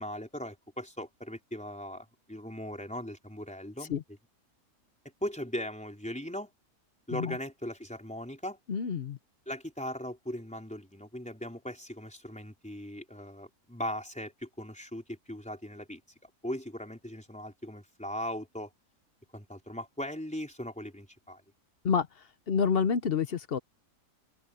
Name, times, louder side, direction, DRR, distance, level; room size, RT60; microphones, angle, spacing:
voice 1, 0.0-4.0 5.2-6.5 7.1-8.6 9.5-18.7 19.3-21.4, equal, 5° left, 4.1 m, -39 dB
voice 2, 8.7-9.2 21.8-22.1 22.5-23.6, left 6 dB, 50° left, 0.8 m, -28 dB
omnidirectional pair, 1.6 m